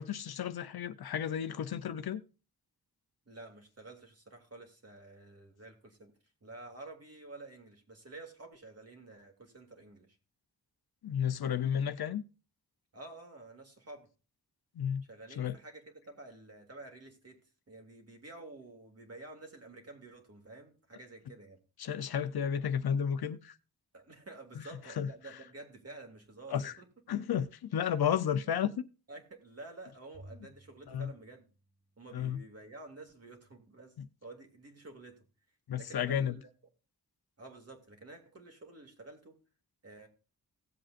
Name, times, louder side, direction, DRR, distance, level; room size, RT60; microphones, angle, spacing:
voice 1, 0.0-2.2 11.0-12.2 14.8-15.0 15.4-15.6 21.8-23.5 25.0-25.1 26.5-26.7 27.1-28.9 30.9-31.1 32.1-32.4 34.0-34.1 35.7-36.4, left 8 dB, 80° left, 0.7 m, -32 dB
voice 2, 3.3-6.1 6.4-10.2 12.9-14.1 15.1-21.6 23.9-26.8 28.2-28.3 29.1-31.5 32.0-35.2 35.8-36.5 37.4-39.4 39.8-40.1, right 2 dB, 40° right, 2.3 m, -50 dB
Bowed string instrument, 30.1-32.5, right 1 dB, 10° right, 2.3 m, -57 dB
17.5 x 7.6 x 2.5 m
wide cardioid pair, 120°, 37 cm